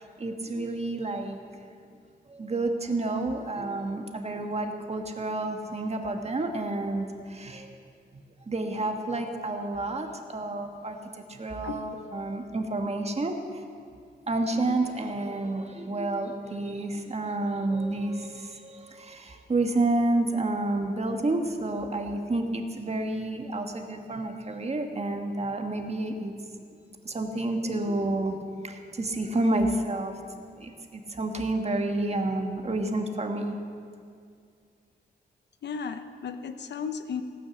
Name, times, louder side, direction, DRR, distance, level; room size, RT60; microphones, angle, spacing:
voice 1, 0.2-1.4 2.3-7.8 8.5-11.0 11.3-13.6 14.3-26.3 27.0-28.3 28.6-30.1 30.6-33.5, right 2 dB, 35° right, 4 dB, 1.5 m, -29 dB
voice 2, 35.6-37.2, left 6 dB, 80° left, 9 dB, 0.9 m, -34 dB
17.5 x 9.4 x 7.1 m, 2.3 s
wide cardioid pair, 90°, 18 cm